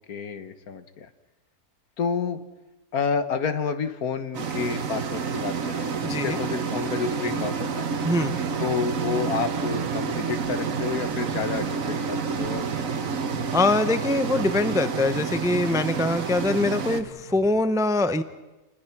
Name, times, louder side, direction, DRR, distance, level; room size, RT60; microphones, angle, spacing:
voice 1, 0.1-1.1 2.0-2.4 2.9-5.9 6.2-7.9 8.6-12.9, left 6 dB, 70° left, 10 dB, 1.7 m, -30 dB
sound 1, 4.3-17.0, right 5 dB, 60° right, 1.6 m, -29 dB
voice 2, 6.0-6.4 8.0-8.4 13.5-18.2, left 2 dB, 5° right, 11 dB, 0.6 m, -23 dB
sound 2, 10.1-17.5, equal, 35° left, 4.6 m, -45 dB
29.5 x 20.5 x 6.0 m, 1.1 s
omnidirectional pair, 1.6 m